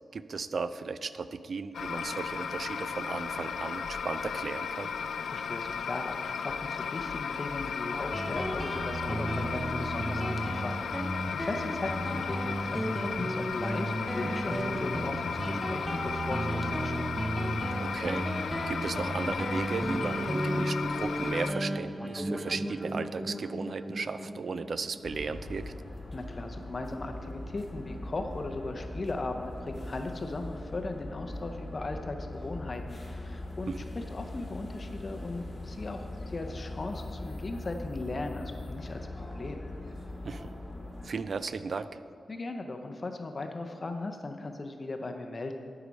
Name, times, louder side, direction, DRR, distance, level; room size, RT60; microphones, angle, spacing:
voice 1, 0.1-4.9 17.8-18.3 18.7-25.7 33.7-33.8 40.2-40.5 41.0-41.9, right 4 dB, 55° right, 13 dB, 0.3 m, -35 dB
sound 1, 1.7-21.5, left 6 dB, 85° left, 0.3 m, -35 dB
voice 2, 5.2-17.1 26.1-39.6 42.3-45.6, left 2 dB, 35° left, 5 dB, 0.6 m, -38 dB
Guitar, 8.1-25.3, right 1 dB, 5° right, 0.5 m, -33 dB
sound 2, 25.0-41.1, left 2 dB, 20° left, 1.5 m, -41 dB
11.5 x 4.8 x 5.1 m, 2.5 s
wide cardioid pair, 110°, 0 cm